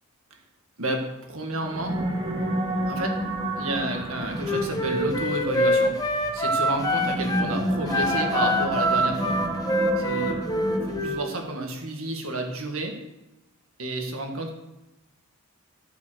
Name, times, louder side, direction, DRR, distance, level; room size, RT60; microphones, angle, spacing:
voice 1, 0.8-2.0 2.9-3.2 3.6-6.0 6.3-9.4 10.0-10.4 10.9-13.0 13.8-14.5, right 2 dB, 65° right, 3 dB, 1.9 m, -30 dB
sound 1, 1.5-11.4, right 1 dB, 20° right, 1.6 m, -30 dB
Wind instrument woodwind instrument, 4.4-7.5 7.9-11.3, equal, 15° left, 1.2 m, -25 dB
13.0 x 5.7 x 6.5 m, 0.96 s
head